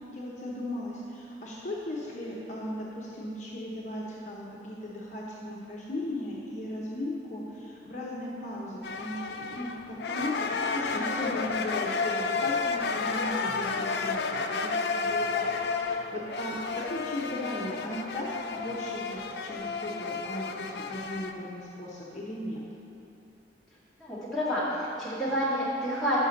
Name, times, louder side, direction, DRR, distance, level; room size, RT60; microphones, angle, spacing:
voice 1, 0.1-15.5 15.7-22.6, left 1 dB, 40° left, -5 dB, 0.7 m, -37 dB
sound 1, 8.8-21.3, left 4 dB, 65° left, 0.4 m, -31 dB
voice 2, 24.0-26.2, equal, ahead, -11 dB, 1.8 m, -29 dB
5.8 x 5.4 x 6.4 m, 2.8 s
head